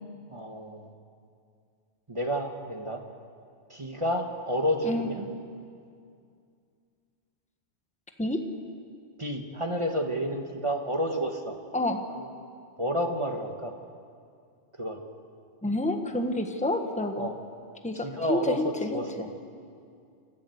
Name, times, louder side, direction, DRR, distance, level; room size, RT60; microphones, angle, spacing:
voice 1, 0.3-0.9 2.1-3.0 3.7-5.3 9.2-11.6 12.2-12.3 12.8-13.7 14.8-15.0 17.2-17.4 17.9-19.3, equal, 25° right, 3 dB, 1.5 m, -30 dB
voice 2, 15.6-17.3 17.8-19.0, left 2 dB, 5° left, 5 dB, 1.3 m, -28 dB
27.5 x 15.5 x 8.0 m, 2.4 s
omnidirectional pair, 1.2 m